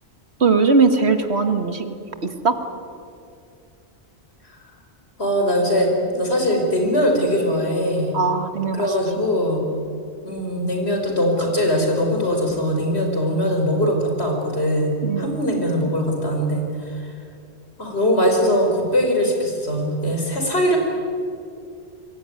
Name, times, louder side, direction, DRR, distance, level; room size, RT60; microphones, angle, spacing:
voice 1, 0.4-1.9 2.2-2.6 8.1-8.9 15.0-15.4, right 4 dB, 70° right, 7 dB, 2.0 m, -19 dB
voice 2, 5.2-8.2 8.7-9.6 10.2-17.1 17.8-20.8, equal, 70° left, 2 dB, 5.4 m, -21 dB
27.0 x 22.5 x 9.7 m, 2.5 s
omnidirectional pair, 1.1 m